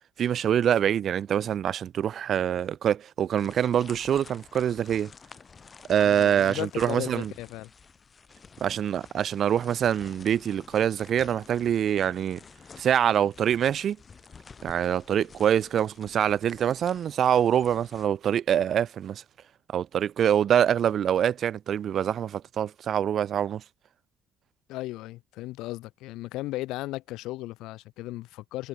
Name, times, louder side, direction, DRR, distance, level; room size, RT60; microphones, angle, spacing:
voice 1, 0.2-5.1 5.9-7.3 8.6-12.4 12.8-14.0 14.6-19.2 19.7-23.6, right 9 dB, 45° right, 0.3 m, -25 dB
sound 1, 3.4-18.1, left 5 dB, 25° left, 1.0 m, -50 dB
voice 2, 6.0-7.7 24.7-28.7, left 18 dB, 80° left, 1.1 m, -36 dB
cardioid pair, 140°, 0 cm